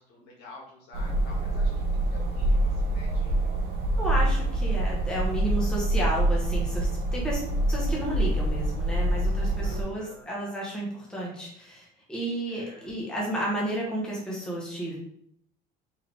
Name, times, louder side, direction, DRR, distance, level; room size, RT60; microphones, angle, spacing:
voice 1, 0.0-3.4 9.6-10.2 12.5-12.9, left 2 dB, 80° left, -2 dB, 1.7 m, -49 dB
sound 1, 0.9-9.8, right 1 dB, 60° right, 0.9 m, -26 dB
voice 2, 4.0-7.4 7.7-15.0, right 1 dB, 5° left, -4 dB, 1.0 m, -32 dB
4.5 x 3.3 x 3.3 m, 0.69 s
cardioid pair, 175°, 17 cm